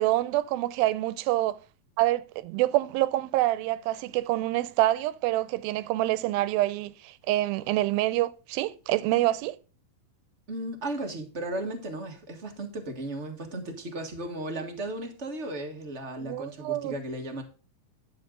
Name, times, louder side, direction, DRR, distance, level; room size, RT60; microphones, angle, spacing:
voice 1, 0.0-1.6 2.0-9.6 16.2-16.9, right 16 dB, 80° right, 2.5 m, -26 dB
voice 2, 10.5-17.4, right 1 dB, 65° right, 0.6 m, -35 dB
11.5 x 7.7 x 3.8 m
omnidirectional pair, 4.2 m